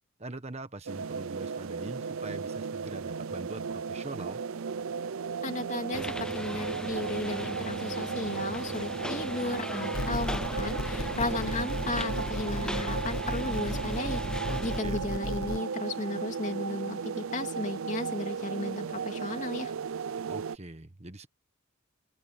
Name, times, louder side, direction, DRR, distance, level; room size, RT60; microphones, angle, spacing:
voice 1, 0.2-4.4 14.5-15.0 20.3-21.3, right 2 dB, 30° right, 1.4 m, -42 dB
sound 1, 0.9-20.6, right 6 dB, 70° right, 0.5 m, -35 dB
voice 2, 5.4-19.7, left 2 dB, 35° left, 2.8 m, -35 dB
sound 2, 5.9-14.8, left 1 dB, 5° left, 0.5 m, -39 dB
sound 3, 9.9-15.6, left 1 dB, 70° left, 1.4 m, -35 dB
open air
head